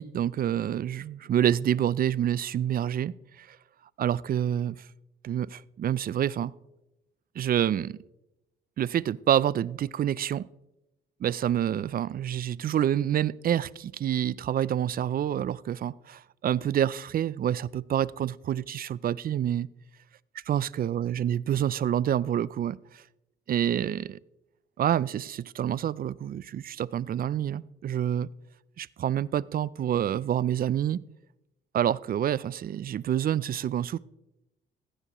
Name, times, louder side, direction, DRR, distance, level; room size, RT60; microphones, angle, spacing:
voice 1, 0.0-3.6 4.0-4.8 5.2-6.5 7.4-8.0 8.8-10.5 11.2-19.7 20.5-23.0 23.5-24.2 24.8-28.3 28.8-31.0 31.7-34.0, right 10 dB, 50° right, 0.4 m, -27 dB
16.5 x 15.5 x 3.0 m
cardioid pair, 90°, 20 cm